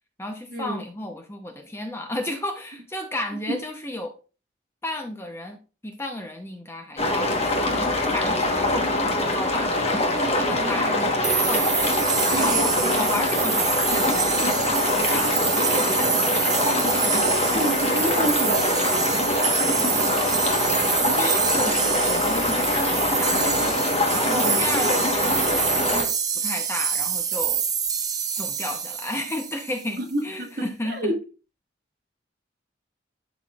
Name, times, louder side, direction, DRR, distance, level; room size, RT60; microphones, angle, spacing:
voice 1, 0.2-4.1 4.8-9.8 10.4-11.0 11.4-11.8 12.3-17.4 19.9-20.3 21.2-23.4 24.1-26.1 26.3-27.6 28.4-31.1, left 1 dB, 15° left, 0.7 m, -33 dB
sound 1, 7.0-26.0, left 2 dB, 30° left, 1.2 m, -23 dB
voice 2, 10.5-11.0 12.3-13.3 16.6-17.1 17.5-19.2 24.2-24.6 30.0-31.2, right 1 dB, 50° right, 1.6 m, -30 dB
sound 2, 11.2-29.9, right 7 dB, 20° right, 0.5 m, -26 dB
11.5 x 4.3 x 2.4 m
head